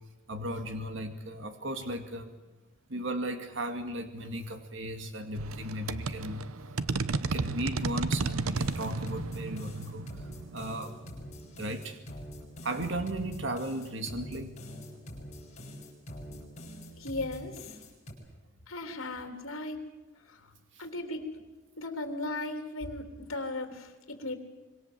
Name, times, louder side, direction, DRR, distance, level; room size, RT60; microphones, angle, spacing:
voice 1, 0.3-2.3 2.9-6.5 7.2-10.1 10.5-11.0 11.6-12.0 12.6-15.0, right 1 dB, 60° right, 6 dB, 2.2 m, -36 dB
sound 1, 5.3-11.8, right 3 dB, 85° right, 0.8 m, -34 dB
sound 2, 8.4-18.1, equal, 30° left, 7.4 m, -45 dB
voice 2, 17.0-17.6 18.7-19.8 20.3-20.4 20.8-21.3 21.8-24.4, left 2 dB, 75° left, 5 dB, 3.5 m, -37 dB
25.5 x 23.5 x 7.5 m, 1.2 s
head